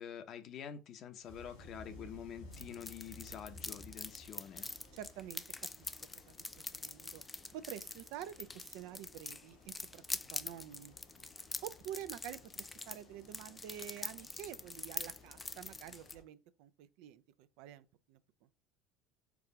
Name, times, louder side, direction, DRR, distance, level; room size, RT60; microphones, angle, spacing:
voice 1, 0.0-4.7, left 8 dB, 50° left, 0.7 m, -47 dB
sound 1, 1.2-16.2, left 1 dB, 80° left, 2.0 m, -59 dB
sound 2, 2.5-16.2, left 3 dB, 20° left, 0.4 m, -45 dB
voice 2, 4.9-5.4 5.8-5.9 6.3-6.4 6.7-7.2 7.5-10.0 10.3-11.0 11.6-18.2, right 11 dB, 65° right, 0.4 m, -48 dB
4.7 x 2.4 x 4.6 m
hypercardioid pair, 70°, 0 cm